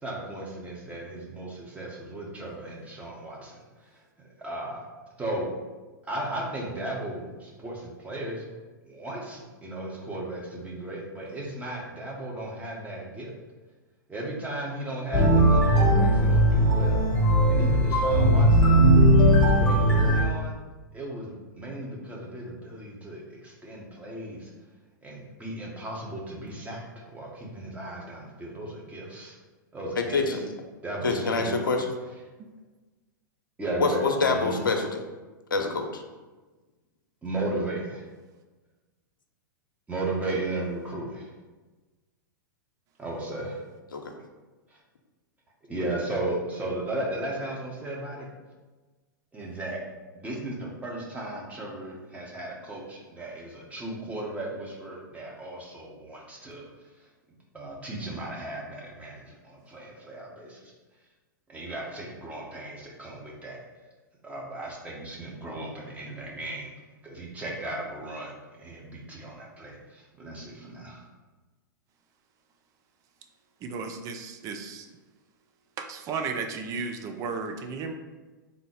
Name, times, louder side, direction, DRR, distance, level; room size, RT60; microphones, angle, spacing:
voice 1, 0.0-3.9 4.4-4.8 5.2-5.5 6.0-8.5 8.8-13.3 14.1-17.0 17.5-18.8 19.1-20.5 20.9-24.5 25.0-29.4 29.7-30.4 30.8-31.5 33.6-34.6 37.2-38.0 39.9-41.3 43.0-43.6 44.7-44.8 45.7-48.3 49.3-49.8 50.1-56.7 57.5-60.7 61.5-63.6 64.2-66.7 67.0-71.0, right 1 dB, 15° right, -3 dB, 1.1 m, -35 dB
sound 1, 15.1-20.2, right 1 dB, 10° left, 1.1 m, -19 dB
voice 2, 30.0-30.4 31.0-31.9 33.8-35.0 35.5-36.0 43.9-44.0, left 4 dB, 75° left, 4 dB, 0.7 m, -26 dB
voice 3, 73.6-74.9 75.8-77.9, right 5 dB, 30° right, 5 dB, 0.5 m, -34 dB
3.8 x 2.8 x 4.8 m, 1.2 s
figure-of-eight pair, 105°, 11 cm